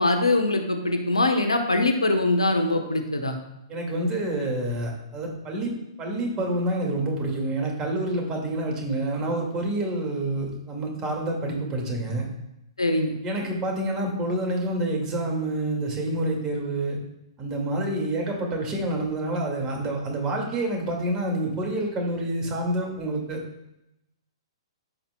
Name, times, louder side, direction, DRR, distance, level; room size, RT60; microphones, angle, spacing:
voice 1, 0.0-3.4 12.8-13.2, left 2 dB, 80° left, 5 dB, 1.2 m, -22 dB
voice 2, 3.7-5.7 6.0-12.3 13.2-17.0 17.4-23.4, right 1 dB, 20° right, 1 dB, 2.3 m, -28 dB
14.0 x 5.9 x 2.4 m, 0.85 s
figure-of-eight pair, 115°, 3 cm